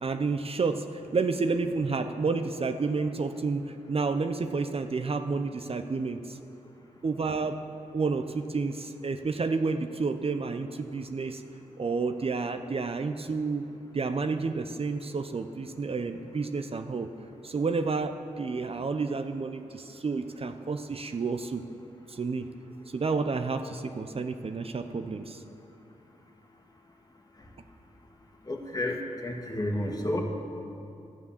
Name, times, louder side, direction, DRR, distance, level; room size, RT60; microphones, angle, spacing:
voice 1, 0.0-6.4 7.0-7.6 7.9-11.4 11.8-13.6 13.9-17.1 17.4-21.6 22.1-22.5 22.9-25.4, right 4 dB, 45° right, 8 dB, 0.6 m, -30 dB
voice 2, 28.4-30.2, left 1 dB, 30° left, 2 dB, 1.7 m, -31 dB
12.0 x 6.9 x 7.1 m, 2.8 s
cardioid pair, 50°, 13 cm